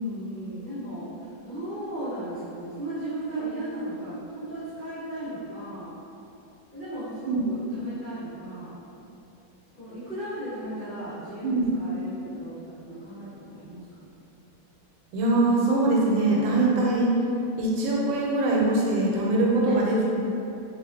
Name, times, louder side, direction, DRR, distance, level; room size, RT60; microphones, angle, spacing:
voice 1, 0.0-5.9 6.7-8.7 9.8-14.1 19.6-19.8, right 1 dB, 45° left, -14 dB, 0.6 m, -36 dB
voice 2, 15.1-17.1 17.6-20.1, right 2 dB, 85° right, -3 dB, 1.3 m, -22 dB
3.0 x 2.4 x 3.4 m, 2.8 s
omnidirectional pair, 2.0 m